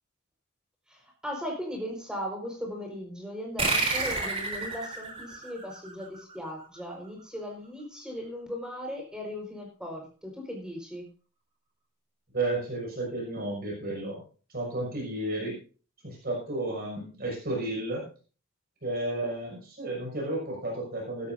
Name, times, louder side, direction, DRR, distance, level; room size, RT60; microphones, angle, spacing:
voice 1, 0.9-11.1, equal, 5° right, 0 dB, 4.8 m, -38 dB
sound 1, 3.6-6.6, right 3 dB, 30° right, 3.8 m, -30 dB
voice 2, 12.3-14.2 14.5-15.6 16.0-18.1 18.8-21.3, right 2 dB, 45° right, -1 dB, 5.8 m, -32 dB
16.5 x 12.5 x 2.7 m, 0.37 s
head